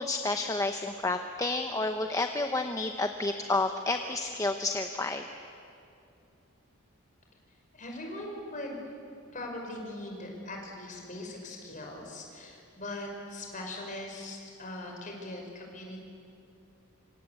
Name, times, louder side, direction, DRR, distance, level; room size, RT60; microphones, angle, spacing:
voice 1, 0.0-5.2, left 2 dB, 15° left, 6 dB, 0.9 m, -30 dB
voice 2, 7.7-8.8 9.3-16.0, left 1 dB, 35° left, 1 dB, 5.4 m, -40 dB
26.0 x 25.5 x 8.4 m, 2.6 s
head